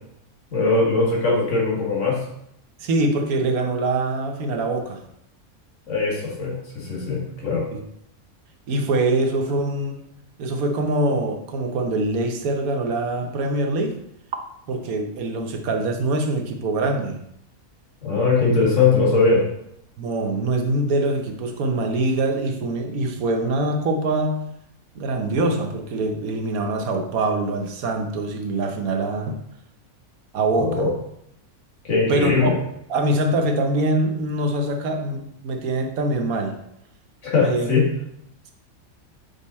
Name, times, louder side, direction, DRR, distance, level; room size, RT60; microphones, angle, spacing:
voice 1, 0.5-2.2 5.9-7.6 18.0-19.4 30.6-30.9 31.8-32.6 37.2-37.9, left 4 dB, 60° left, -3 dB, 2.0 m, -20 dB
voice 2, 2.8-5.0 7.7-7.8 8.7-10.0 10.4-14.0 14.7-17.2 20.0-24.5 24.9-29.4 30.3-30.9 32.1-32.5 32.9-36.6 37.4-37.7, right 2 dB, 85° right, 4 dB, 1.3 m, -24 dB
5.3 x 5.3 x 4.2 m, 0.77 s
omnidirectional pair, 1.5 m